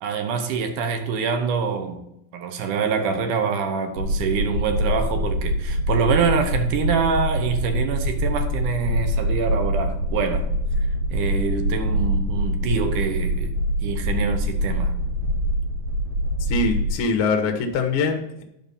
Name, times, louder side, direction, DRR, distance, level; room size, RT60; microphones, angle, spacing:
voice 1, 0.0-2.0 2.3-10.5 11.1-13.5 13.8-14.9, right 5 dB, 75° right, 2.0 m, -25 dB
sound 1, 4.0-16.9, equal, 55° right, 2.0 m, -24 dB
voice 2, 16.4-18.4, left 4 dB, 85° left, 1.1 m, -23 dB
9.9 x 5.1 x 5.4 m
omnidirectional pair, 4.4 m